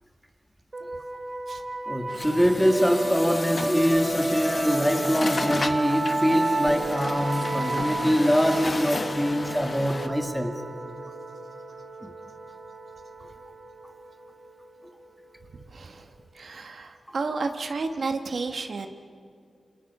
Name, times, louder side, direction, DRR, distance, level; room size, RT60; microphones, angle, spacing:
sound 1, 0.7-16.1, right 2 dB, 30° right, 1.6 m, -32 dB
voice 1, 1.9-10.6 12.0-12.1, equal, ahead, 5 dB, 1.8 m, -24 dB
Truck, 2.1-10.1, left 3 dB, 40° left, 1.2 m, -34 dB
voice 2, 15.5-18.9, right 3 dB, 65° right, 6 dB, 1.4 m, -32 dB
27.5 x 27.5 x 5.5 m, 2.3 s
wide cardioid pair, 115°, 0 cm